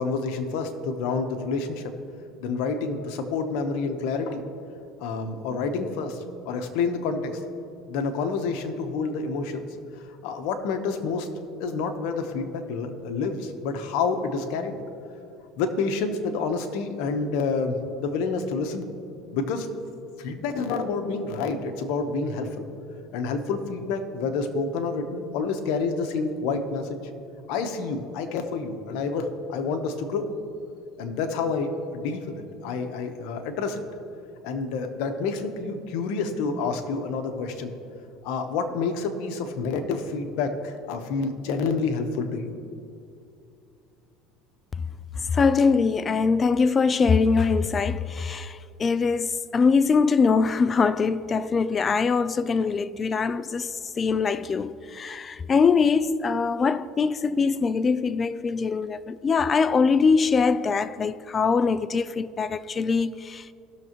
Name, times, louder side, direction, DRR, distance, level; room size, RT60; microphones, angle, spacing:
voice 1, 0.0-1.9 2.4-4.4 5.0-7.4 7.9-9.6 10.2-11.3 11.6-14.8 15.6-18.8 19.3-19.7 20.2-22.6 23.1-27.0 27.5-30.3 31.0-33.8 34.4-37.7 38.2-42.5, left 4 dB, 75° left, 1.0 m, -28 dB
voice 2, 45.2-63.5, left 5 dB, 30° left, 0.3 m, -23 dB
17.5 x 6.7 x 3.0 m
supercardioid pair, 115°, 0 cm